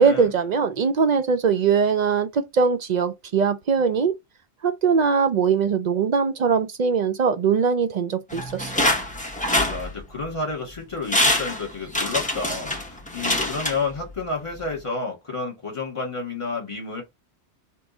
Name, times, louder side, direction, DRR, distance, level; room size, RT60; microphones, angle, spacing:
voice 1, 0.0-4.1 4.6-8.7 9.0-9.1, right 6 dB, 60° right, 0.5 m, -21 dB
sound 1, 8.3-10.3 10.8-10.9 11.1-14.3 14.6-14.7, left 1 dB, 10° left, 0.6 m, -25 dB
voice 2, 9.6-17.0, left 3 dB, 25° left, 1.8 m, -30 dB
3.4 x 3.0 x 4.1 m
omnidirectional pair, 1.2 m